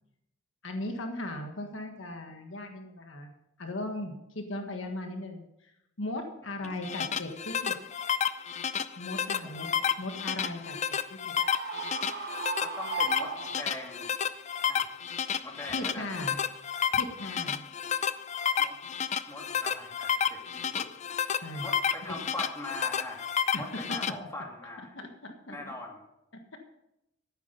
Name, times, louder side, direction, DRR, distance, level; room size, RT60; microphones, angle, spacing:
voice 1, 0.6-3.3 3.6-5.7 6.0-7.7 9.0-9.7 10.0-10.8 11.1-11.3 15.7-16.4 16.9-17.6 21.4-21.7 22.1-22.2 23.5-23.6 24.9-25.6, left 1 dB, 75° left, 4 dB, 1.6 m, -38 dB
sound 1, 6.6-24.1, left 8 dB, 35° left, 0.5 m, -31 dB
voice 2, 9.4-9.9 12.6-14.1 14.7-15.0 15.4-16.1 18.6-18.7 19.3-20.9 21.6-23.3 23.5-24.9 25.5-26.0, left 2 dB, 15° left, -1 dB, 2.7 m, -41 dB
Screaming, 11.4-14.1, right 5 dB, 55° right, 1.3 m, -36 dB
13.5 x 9.5 x 5.3 m, 0.85 s
head